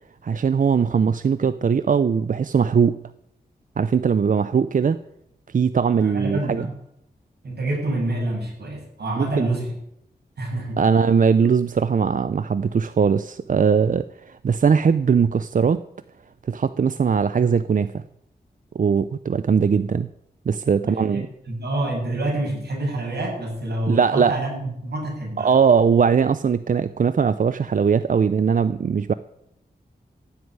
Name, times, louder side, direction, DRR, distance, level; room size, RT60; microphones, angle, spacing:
voice 1, 0.2-3.0 3.8-5.0 5.5-6.7 9.2-9.5 10.8-15.8 16.5-18.0 18.7-20.1 20.5-21.3 23.9-24.4 25.4-29.1, right 6 dB, 55° right, 13 dB, 0.5 m, -20 dB
voice 2, 5.8-6.8 7.4-9.7 10.4-10.8 20.8-25.5, right 1 dB, 80° right, -1 dB, 7.2 m, -27 dB
15.0 x 8.0 x 9.6 m, 0.78 s
wide cardioid pair, 120°, 17 cm